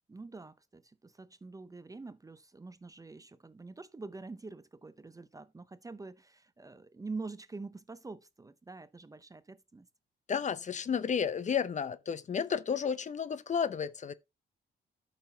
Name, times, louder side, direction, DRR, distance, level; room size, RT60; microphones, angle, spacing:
voice 1, 0.1-9.9, right 3 dB, 15° right, 0.6 m, -46 dB
voice 2, 10.3-14.1, left 7 dB, 35° left, 0.6 m, -32 dB
12.5 x 5.7 x 2.8 m
cardioid pair, 90°, 20 cm